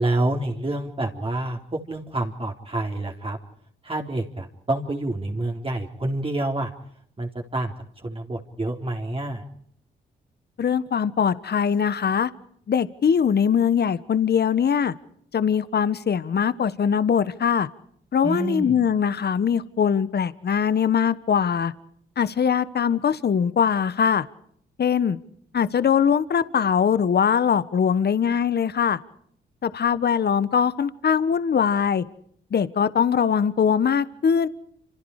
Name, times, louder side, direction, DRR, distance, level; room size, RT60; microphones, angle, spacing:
voice 1, 0.0-3.4 3.8-6.7 7.2-9.4 18.2-18.7, right 2 dB, 30° right, 3.9 m, -28 dB
voice 2, 10.6-12.3 12.7-14.9 15.3-17.7 18.1-21.7 22.2-24.2 24.8-25.2 25.5-29.0 29.6-32.0 32.5-34.5, left 7 dB, 55° left, 1.4 m, -21 dB
28.5 x 27.5 x 5.0 m
supercardioid pair, 55°, 20 cm